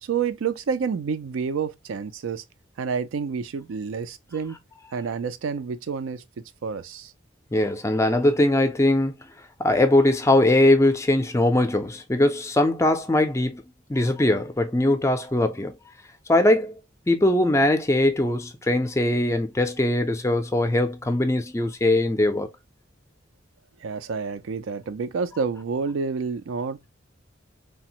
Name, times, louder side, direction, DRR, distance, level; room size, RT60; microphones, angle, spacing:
voice 1, 0.0-2.4 2.8-4.6 4.9-6.2 6.6-7.1 23.8-26.9, right 5 dB, 75° right, 0.4 m, -29 dB
voice 2, 7.5-9.1 9.6-13.6 13.9-15.7 16.3-16.8 17.1-22.5, left 1 dB, 15° left, 0.4 m, -21 dB
3.3 x 2.0 x 2.8 m
head